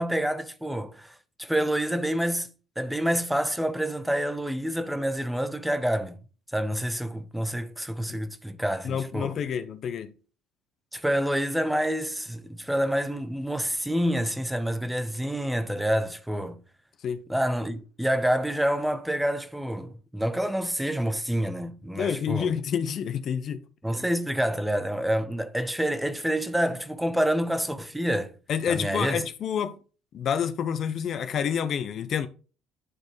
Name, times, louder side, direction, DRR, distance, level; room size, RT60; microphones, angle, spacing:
voice 1, 0.0-2.5 2.8-6.2 6.5-9.3 10.9-16.6 17.3-22.6 23.8-28.3 28.7-29.2, equal, 5° right, 0.9 m, -27 dB
voice 2, 8.8-10.1 17.0-17.2 22.0-23.6 28.5-29.7 30.1-32.3, left 8 dB, 50° left, 0.7 m, -28 dB
11.0 x 4.1 x 3.3 m
hypercardioid pair, 65°, 0 cm